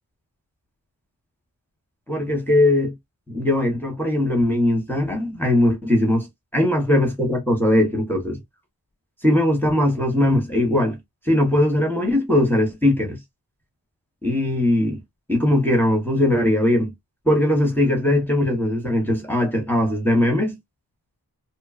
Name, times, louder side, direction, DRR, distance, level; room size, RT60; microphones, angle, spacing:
voice 1, 2.1-2.9 3.3-6.3 6.5-8.4 9.2-11.0 11.3-13.2 14.2-15.0 15.3-16.9 17.3-20.6, left 1 dB, 5° left, 0.9 m, -20 dB
2.9 x 2.3 x 2.3 m
wide cardioid pair, 75°, 39 cm